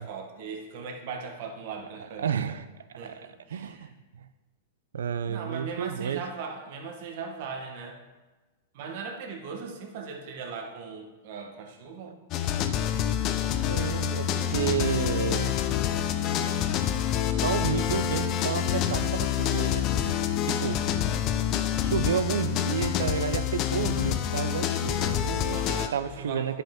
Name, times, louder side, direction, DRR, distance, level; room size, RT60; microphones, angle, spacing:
voice 1, 0.0-2.4 2.9-3.9 5.2-8.0 8.7-12.2 20.5-21.0 25.5-26.5, right 5 dB, 55° right, 3 dB, 1.3 m, -39 dB
voice 2, 2.2-2.6 3.0-4.3 4.9-6.2 13.6-15.6 17.2-20.1 20.5-20.8 21.8-25.6 25.9-26.6, right 8 dB, 85° right, 12 dB, 0.5 m, -31 dB
sound 1, 12.3-25.9, left 10 dB, 35° left, 0.5 m, -27 dB
10.0 x 5.6 x 3.6 m, 1.2 s
hypercardioid pair, 140°, 0 cm